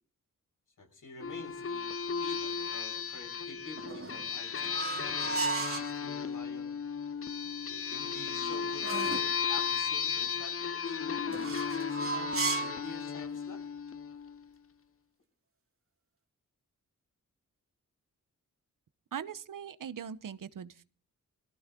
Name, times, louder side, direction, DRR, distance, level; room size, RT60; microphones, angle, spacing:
voice 1, 0.8-6.7 7.7-11.6 11.9-13.6, left 3 dB, 70° left, 6.8 m, -48 dB
sound 1, 1.2-14.4, left 6 dB, 45° left, 0.7 m, -35 dB
sound 2, 3.8-5.9 7.9-9.4 11.3-12.9, right 4 dB, 40° right, 2.7 m, -35 dB
voice 2, 19.1-20.8, right 8 dB, 75° right, 1.0 m, -41 dB
22.0 x 15.0 x 3.8 m
wide cardioid pair, 90°, 32 cm